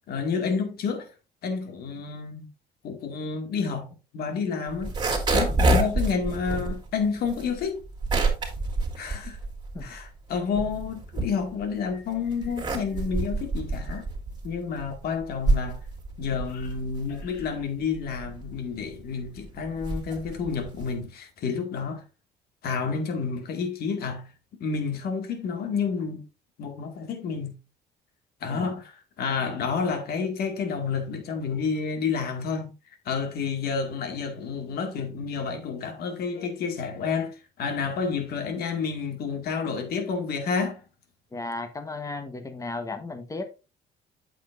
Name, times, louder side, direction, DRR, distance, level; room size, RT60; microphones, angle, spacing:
voice 1, 0.1-1.1 1.4-2.5 2.8-3.9 4.1-4.9 5.3-7.8 9.0-9.4 9.8-14.1 14.4-15.8 16.2-22.0 22.6-24.3 24.6-26.2 26.6-27.6 28.4-32.7 33.1-40.8, left 5 dB, 65° left, 2.2 m, -30 dB
sound 1, 4.7-10.0 10.4-11.8 12.3-21.0, right 2 dB, 25° right, 3.3 m, -27 dB
voice 2, 41.3-43.6, left 3 dB, 20° left, 1.3 m, -35 dB
8.7 x 7.6 x 2.6 m
cardioid pair, 110°, 17 cm